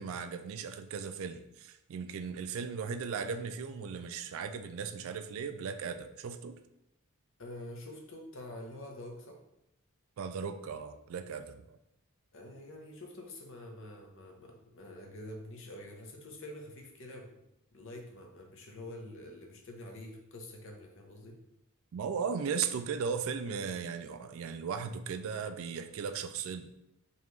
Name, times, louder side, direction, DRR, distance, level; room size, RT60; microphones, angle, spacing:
voice 1, 0.0-6.6 10.2-11.8 21.9-26.7, right 6 dB, 65° right, 9 dB, 0.3 m, -37 dB
voice 2, 7.4-9.4 12.3-17.4 17.7-21.4, left 1 dB, 55° left, 2 dB, 0.8 m, -47 dB
5.4 x 2.4 x 3.1 m, 0.85 s
head